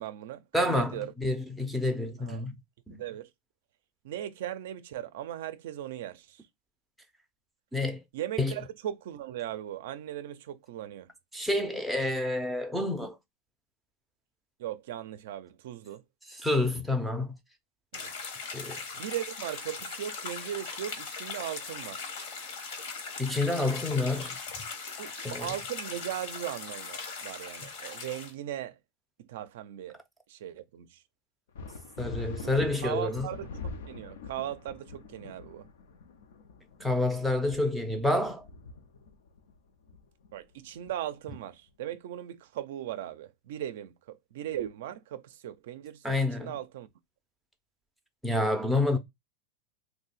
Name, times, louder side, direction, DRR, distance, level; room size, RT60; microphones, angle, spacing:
voice 1, 0.0-1.1 2.2-2.5 3.0-3.3 4.0-6.4 8.1-11.1 14.6-16.0 17.9-18.1 18.9-22.1 25.0-28.8 29.2-30.0 30.3-31.0 32.4-32.5 32.8-35.7 40.3-46.9, right 11 dB, 70° right, 0.4 m, -38 dB
voice 2, 0.5-2.5 2.9-3.0 7.7-8.0 8.4-8.5 11.3-13.1 16.4-17.4 18.5-18.8 23.2-24.4 25.2-25.5 32.0-33.3 36.8-38.4 46.0-46.5 48.2-49.0, left 2 dB, ahead, 0.5 m, -28 dB
sound 1, 17.9-28.3, left 5 dB, 55° left, 1.0 m, -39 dB
sound 2, 31.6-41.5, left 4 dB, 80° left, 0.6 m, -44 dB
2.7 x 2.1 x 4.0 m
supercardioid pair, 150°, 0 cm